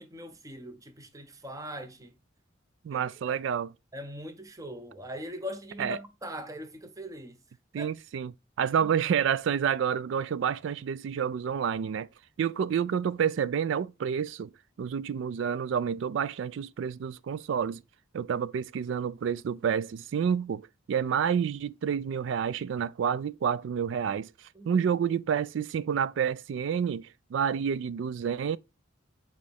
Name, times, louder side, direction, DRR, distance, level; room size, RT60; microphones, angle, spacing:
voice 1, 0.0-2.1 2.9-3.4 3.9-7.4 7.8-7.9 8.8-8.9 24.5-24.8, equal, 15° right, 0.7 m, -41 dB
voice 2, 2.8-3.7 5.8-6.0 7.7-8.3 8.6-12.1 12.4-14.5 14.8-17.8 18.1-20.6 20.9-24.3 24.7-28.6, right 7 dB, 65° right, 0.3 m, -29 dB
7.4 x 4.6 x 3.4 m
head